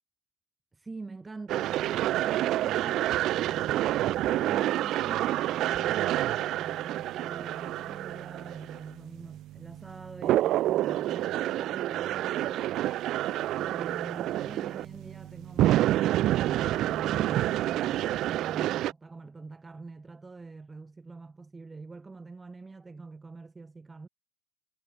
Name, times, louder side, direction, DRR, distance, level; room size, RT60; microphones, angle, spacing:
voice 1, 0.7-13.2 13.5-24.1, right 3 dB, 10° right, 3.3 m, -45 dB
sound 1, 1.5-18.9, right 14 dB, 40° right, 0.5 m, -28 dB
supercardioid pair, 140°, 0 cm